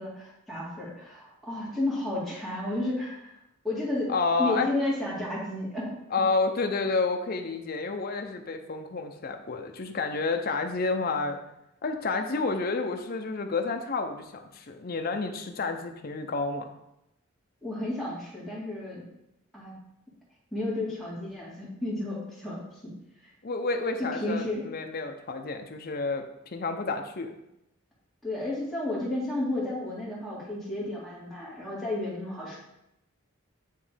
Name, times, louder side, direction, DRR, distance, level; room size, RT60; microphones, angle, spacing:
voice 1, 0.0-3.3 3.6-4.1 4.4-6.0 17.6-19.0 19.5-19.7 20.5-22.9 24.0-24.7 28.2-32.6, left 2 dB, ahead, -7 dB, 1.9 m, -32 dB
voice 2, 4.1-4.7 6.1-11.4 11.8-16.7 23.4-27.4, left 3 dB, 45° left, 5 dB, 0.6 m, -30 dB
9.4 x 3.1 x 3.3 m, 0.85 s
head